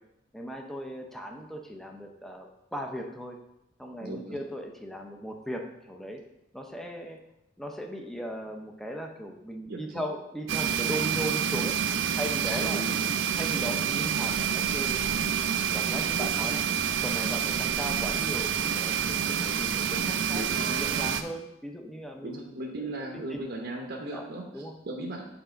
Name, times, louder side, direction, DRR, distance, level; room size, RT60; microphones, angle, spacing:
voice 1, 0.3-3.4 3.8-6.2 6.5-7.2 7.6-11.8 12.1-12.8 13.3-15.0 15.7-16.6 17.0-22.9 23.1-23.5 24.1-24.3 24.5-24.8, equal, ahead, 2 dB, 0.6 m, -38 dB
voice 2, 4.0-4.4 9.7-10.0 12.4-13.0 16.1-16.3 20.3-20.7 22.2-25.3, right 2 dB, 60° right, 0 dB, 0.8 m, -37 dB
sound 1, 10.5-21.2, right 8 dB, 80° right, 0.5 m, -28 dB
7.2 x 3.4 x 5.0 m, 0.85 s
head